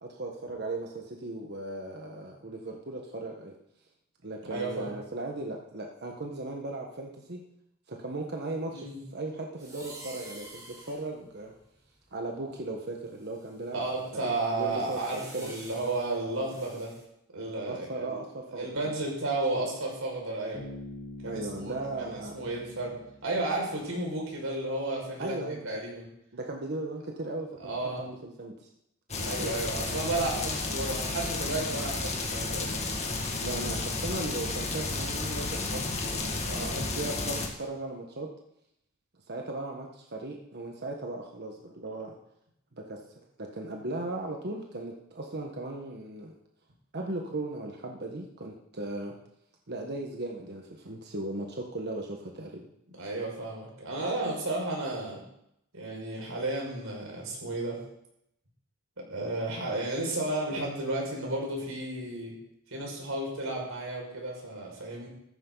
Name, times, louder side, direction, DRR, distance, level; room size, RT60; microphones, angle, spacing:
voice 1, 0.0-3.5 4.2-7.4 7.9-8.9 9.1-11.5 12.1-13.8 14.1-15.5 17.7-18.9 21.2-22.3 25.2-25.7 26.3-28.7 29.1-29.5 33.4-38.3 39.3-42.1 42.7-43.0 43.4-46.3 46.9-49.2 49.7-52.7, right 2 dB, 50° right, 1 dB, 1.4 m, -37 dB
voice 2, 4.5-4.9 8.7-9.0 13.7-16.9 17.3-18.2 18.5-20.6 21.2-23.0 23.2-26.0 27.6-28.0 29.2-33.3 36.4-36.8 53.0-55.2 55.7-57.8 59.0-62.3 62.7-65.1, right 2 dB, 75° right, -1 dB, 5.7 m, -33 dB
sound 1, 9.6-12.5 13.1-17.0, right 1 dB, 15° right, 3.8 m, -50 dB
Bass guitar, 20.5-24.2, left 2 dB, 10° left, 4.1 m, -46 dB
sound 2, 29.1-37.5, left 3 dB, 30° left, 2.1 m, -32 dB
15.0 x 14.0 x 4.0 m, 0.77 s
head